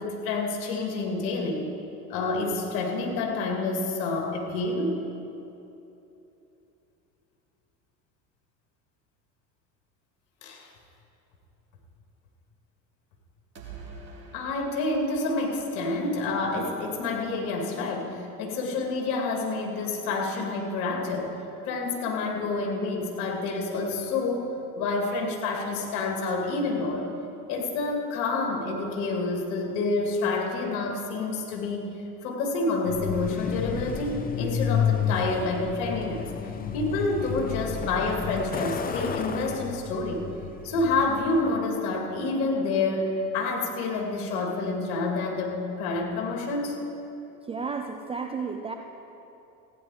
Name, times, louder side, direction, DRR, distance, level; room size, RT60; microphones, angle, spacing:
voice 1, 0.0-1.6 2.1-4.9 10.4-10.7 14.3-21.3 21.6-27.1 27.5-31.8 32.2-36.3 36.7-40.2 40.6-46.8, left 3 dB, 60° left, 1 dB, 2.4 m, -28 dB
sound 1, 13.6-16.5, right 4 dB, 85° right, 1.8 m, -46 dB
Truck, 32.9-41.6, left 7 dB, 20° left, 0.7 m, -31 dB
voice 2, 47.5-48.7, right 5 dB, 10° right, 4 dB, 0.4 m, -32 dB
15.5 x 9.7 x 4.8 m, 2.9 s
figure-of-eight pair, 75°, 50 cm